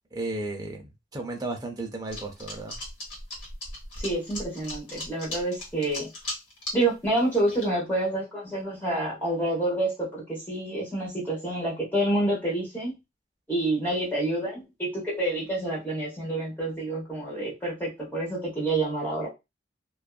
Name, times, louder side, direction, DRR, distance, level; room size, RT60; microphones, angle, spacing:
voice 1, 0.1-2.7, right 2 dB, 20° right, 0.5 m, -34 dB
sound 1, 2.1-6.8 7.2-7.6, left 1 dB, 70° left, 1.2 m, -36 dB
voice 2, 4.0-6.1 6.7-12.9 13.5-19.3, right 1 dB, 10° left, 1.0 m, -28 dB
2.5 x 2.3 x 2.3 m
head